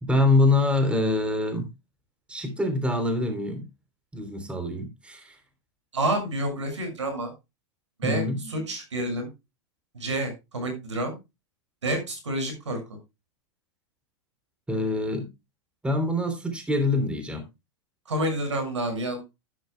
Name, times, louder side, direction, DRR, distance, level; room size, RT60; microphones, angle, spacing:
voice 1, 0.0-1.7 2.3-3.7 4.1-5.4 8.0-8.4 14.7-15.3 15.8-17.4, left 2 dB, 5° right, 7 dB, 3.3 m, -25 dB
voice 2, 5.9-7.3 8.0-9.3 9.9-11.1 11.8-12.8 18.1-19.2, right 1 dB, 80° right, 5 dB, 6.2 m, -29 dB
13.0 x 11.0 x 2.2 m, 0.24 s
hypercardioid pair, 100°, 15 cm